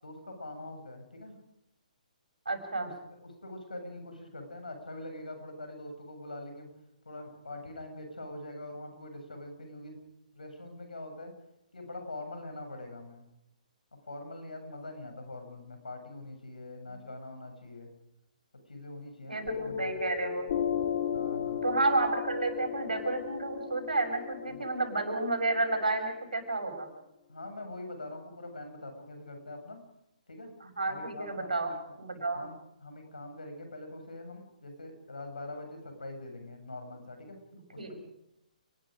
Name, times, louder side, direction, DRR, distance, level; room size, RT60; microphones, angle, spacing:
voice 1, 0.0-1.4 2.8-6.7 7.0-10.0 10.3-11.3 11.7-13.2 14.1-17.9 18.7-19.9 21.1-21.7 24.5-24.7 27.3-29.8 30.3-30.5 30.9-31.7 32.3-37.4 37.7-38.0, left 2 dB, 75° left, 5 dB, 7.5 m, -43 dB
voice 2, 2.5-2.9 16.9-17.0 19.3-20.5 21.6-26.9 30.6-31.7 32.0-32.4 37.5-38.0, right 3 dB, 75° right, 5 dB, 6.9 m, -31 dB
Piano, 19.5-26.5, left 8 dB, 45° left, 2.8 m, -35 dB
29.5 x 21.0 x 5.2 m, 0.83 s
figure-of-eight pair, 130°, 4 cm